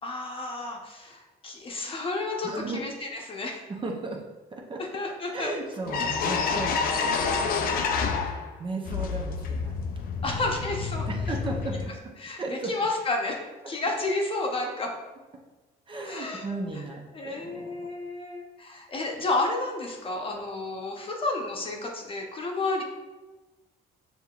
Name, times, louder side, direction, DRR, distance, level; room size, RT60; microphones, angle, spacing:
voice 1, 0.0-3.6 4.8-5.5 6.0-6.1 10.2-11.1 12.2-13.4 13.7-14.9 16.0-16.4 17.1-22.8, left 2 dB, 30° left, 0 dB, 0.8 m, -31 dB
voice 2, 2.4-2.8 3.7-4.2 4.5-4.8 5.3-10.7 11.0-11.9 12.4-12.7 15.9-17.9, right 3 dB, 30° right, 0 dB, 0.7 m, -36 dB
sound 1, 5.5-5.6 5.9-8.5 8.9-11.9, left 5 dB, 60° left, 0.5 m, -28 dB
6.6 x 2.8 x 2.4 m, 1.2 s
cardioid pair, 110°, 17 cm